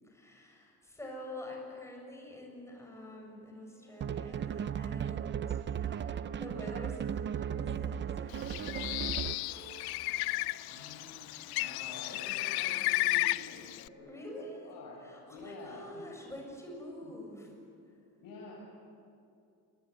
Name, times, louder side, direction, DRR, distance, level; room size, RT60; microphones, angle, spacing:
voice 1, 0.0-9.3 14.1-17.5 17.9-18.0, left 1 dB, 5° left, 0 dB, 7.3 m, -47 dB
sound 1, 3.7-7.8 8.3-12.5, right 5 dB, 80° right, 3.3 m, -55 dB
sound 2, 4.0-9.5, right 8 dB, 30° right, 0.6 m, -36 dB
Bird, 8.3-13.9, left 18 dB, 85° left, 0.6 m, -33 dB
voice 2, 10.6-15.0 15.3-16.0 17.0-17.1 18.2-18.6, left 3 dB, 60° left, -4 dB, 7.1 m, -49 dB
28.0 x 21.5 x 9.7 m, 2.5 s
cardioid pair, 150°, 37 cm